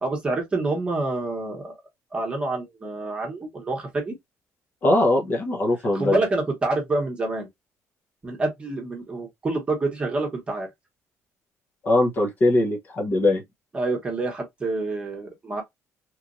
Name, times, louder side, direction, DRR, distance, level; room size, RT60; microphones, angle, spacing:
voice 1, 0.0-1.7 2.1-4.2 5.9-7.5 8.2-10.7 13.7-15.6, right 2 dB, 20° right, 1.1 m, -27 dB
voice 2, 4.8-6.2 11.8-13.4, left 2 dB, 35° left, 0.8 m, -21 dB
3.0 x 2.5 x 2.4 m
cardioid pair, 175°, 6 cm